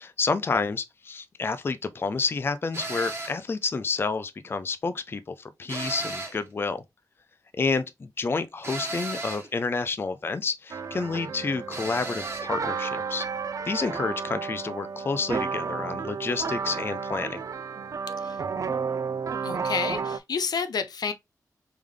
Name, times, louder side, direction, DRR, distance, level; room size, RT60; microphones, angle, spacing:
voice 1, 0.0-6.8 7.6-13.2 13.7-17.4, left 4 dB, 35° left, 0.4 m, -29 dB
sound 1, 2.7-3.4 5.7-6.5 8.6-9.5 11.7-12.5, right 2 dB, 40° right, 1.2 m, -35 dB
sound 2, 10.7-20.2, right 5 dB, 55° right, 0.4 m, -32 dB
voice 2, 18.1-18.4 19.4-21.1, left 5 dB, 80° left, 0.6 m, -30 dB
3.6 x 3.4 x 3.2 m
wide cardioid pair, 125°, 7 cm